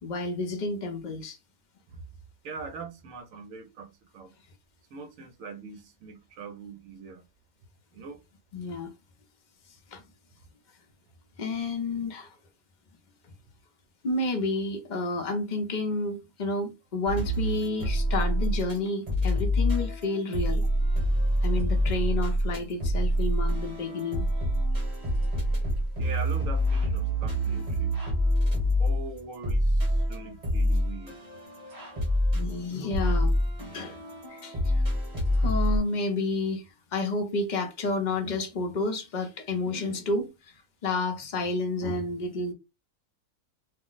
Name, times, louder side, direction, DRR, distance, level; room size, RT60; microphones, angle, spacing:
voice 1, 0.0-1.4 8.5-8.9 9.9-10.0 11.4-12.3 14.0-20.6 21.4-24.3 27.5-27.6 32.3-33.3 33.7-34.0 34.3-34.8 35.4-36.6 36.9-40.5 40.8-42.5, left 2 dB, 50° left, 0.5 m, -30 dB
voice 2, 2.4-4.3 4.9-7.2 7.9-8.2 26.0-28.0 28.8-31.2, right 4 dB, 70° right, 0.9 m, -42 dB
sound 1, 17.1-18.8 19.1-35.8, equal, 30° right, 1.0 m, -26 dB
2.5 x 2.0 x 3.8 m
omnidirectional pair, 1.5 m